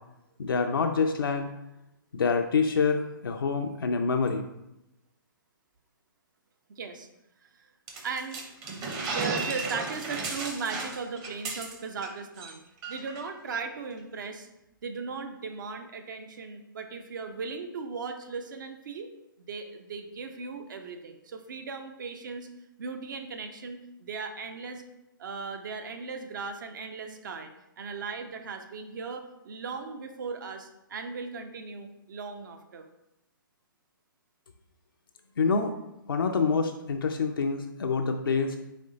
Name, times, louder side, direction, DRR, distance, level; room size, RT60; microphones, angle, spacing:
voice 1, 0.4-1.5 2.1-4.4 35.4-35.8 36.1-38.6, left 5 dB, 80° left, 3 dB, 0.4 m, -26 dB
voice 2, 6.8-7.1 7.4-7.7 8.0-8.4 8.7-12.6 12.9-14.5 14.8-19.1 19.4-22.5 22.8-24.8 25.2-32.9, right 4 dB, 60° right, 6 dB, 0.6 m, -37 dB
sound 1, 7.9-12.1 12.4-12.5 12.8-13.2, right 4 dB, 25° right, 0.7 m, -34 dB
4.2 x 3.2 x 3.8 m, 0.90 s
hypercardioid pair, 135°, 12 cm